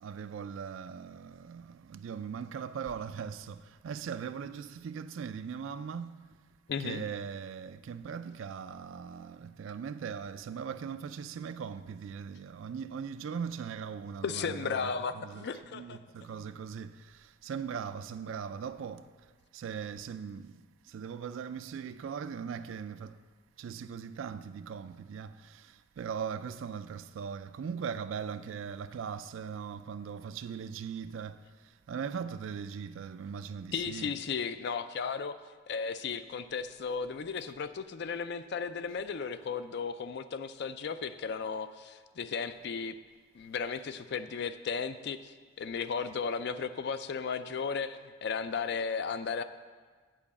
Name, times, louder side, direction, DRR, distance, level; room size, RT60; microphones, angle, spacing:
voice 1, 0.0-6.2 6.8-14.2 14.7-14.8 15.3-15.4 15.7-16.9 17.4-19.0 19.5-20.5 20.9-23.1 23.6-25.3 26.0-31.4 31.9-34.1, right 7 dB, 70° right, 0.3 m, -39 dB
voice 2, 6.7-7.1 14.2-16.0 16.3-16.5 33.7-35.4 35.7-43.0 43.3-49.4, left 5 dB, 55° left, 0.4 m, -35 dB
8.9 x 4.8 x 7.1 m
head